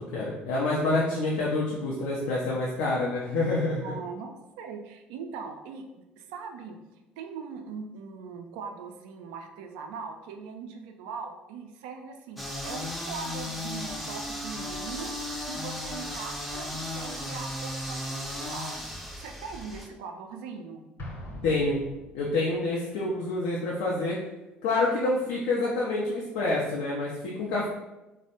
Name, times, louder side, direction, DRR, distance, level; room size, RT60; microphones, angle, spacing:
voice 1, 0.0-3.9 21.4-21.8 22.1-24.2 24.6-27.7, left 2 dB, 70° left, -4 dB, 0.4 m, -27 dB
voice 2, 0.8-1.2 3.8-5.9 6.2-18.8 19.2-20.8 22.4-22.8 27.6-27.7, right 5 dB, 70° right, 5 dB, 0.3 m, -41 dB
sound 1, 12.4-19.9, left 1 dB, ahead, 0.5 m, -35 dB
Explosion, 21.0-22.6, left 1 dB, 50° left, 0.8 m, -42 dB
3.2 x 2.0 x 2.7 m, 1.0 s
hypercardioid pair, 60°, 5 cm